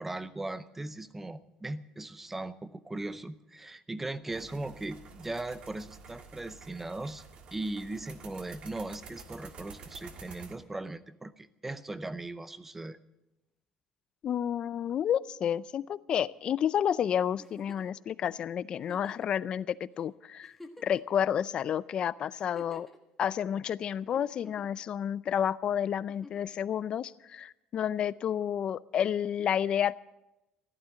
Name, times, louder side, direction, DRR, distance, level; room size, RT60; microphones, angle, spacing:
voice 1, 0.0-7.2 7.5-13.0, right 2 dB, 10° right, 15 dB, 0.6 m, -38 dB
sound 1, 4.3-10.5, right 5 dB, 45° right, 1.7 m, -50 dB
voice 2, 14.2-20.5 20.8-22.9 23.2-30.0, left 9 dB, 40° left, 18 dB, 0.4 m, -30 dB
Giggle, 17.4-18.0 18.8-19.3 20.0-20.1 20.4-21.2 22.3-23.0 24.1-24.8 26.1-26.5 28.0-28.1, left 2 dB, 5° left, 1.4 m, -51 dB
15.0 x 11.5 x 7.6 m, 0.94 s
cardioid pair, 160°, 3 cm